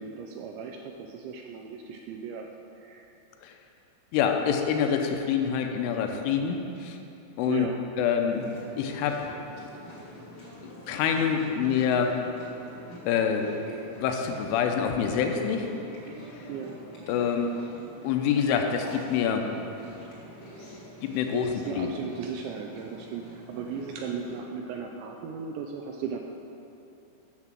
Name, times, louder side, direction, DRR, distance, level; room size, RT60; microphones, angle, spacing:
voice 1, 0.0-2.5 2.8-3.1 7.5-7.8 16.5-16.8 21.3-26.2, right 6 dB, 80° right, 2 dB, 2.6 m, -36 dB
voice 2, 4.1-7.0 7.4-7.7 8.0-9.3 10.9-12.2 13.1-13.5 14.0-15.7 16.4-16.5 17.1-17.5 18.0-19.5 21.0-21.5 21.8-21.9, left 7 dB, 85° left, 4 dB, 3.2 m, -26 dB
Chewing mastication, 8.3-24.4, equal, 45° left, 0.9 m, -46 dB
9.8 x 6.1 x 7.4 m, 2.9 s
omnidirectional pair, 5.7 m